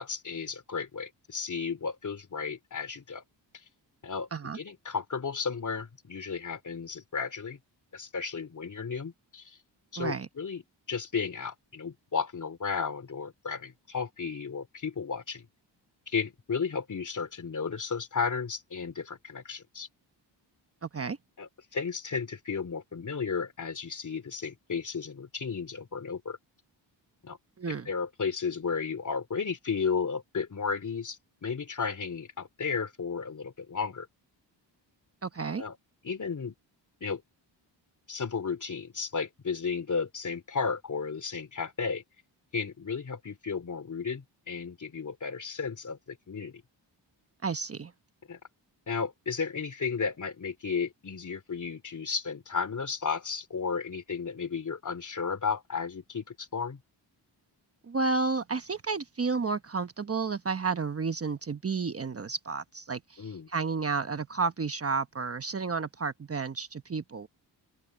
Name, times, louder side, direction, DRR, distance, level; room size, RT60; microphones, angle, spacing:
voice 1, 0.0-3.2 4.0-4.3 4.5-7.6 7.9-9.6 9.9-10.6 10.9-15.5 16.1-19.9 21.4-26.4 27.2-27.4 27.9-34.1 35.6-35.8 36.0-36.5 37.0-37.2 38.1-42.0 42.5-46.6 48.3-48.4 48.9-56.8 63.2-63.5, left 5 dB, 40° left, 3.0 m, -33 dB
voice 2, 10.0-10.3 20.8-21.2 27.6-27.9 35.2-35.6 47.4-47.9 57.8-67.3, right 4 dB, 30° right, 1.1 m, -31 dB
open air
cardioid pair, 95°, 44 cm